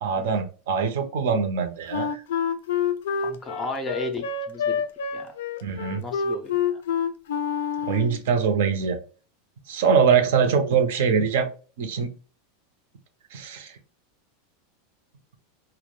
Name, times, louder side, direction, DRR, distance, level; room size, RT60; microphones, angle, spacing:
voice 1, 0.0-2.2 5.6-6.0 7.9-9.0 9.7-11.5 11.8-12.1 13.3-13.7, right 6 dB, 70° right, 7 dB, 0.5 m, -23 dB
Wind instrument woodwind instrument, 1.9-8.2, left 7 dB, 80° left, 0.3 m, -27 dB
voice 2, 3.2-4.8 5.1-5.3 5.8-6.8 10.1-10.5, left 2 dB, 10° left, 4 dB, 0.4 m, -35 dB
2.1 x 2.0 x 3.0 m, 0.37 s
supercardioid pair, 170°, 0 cm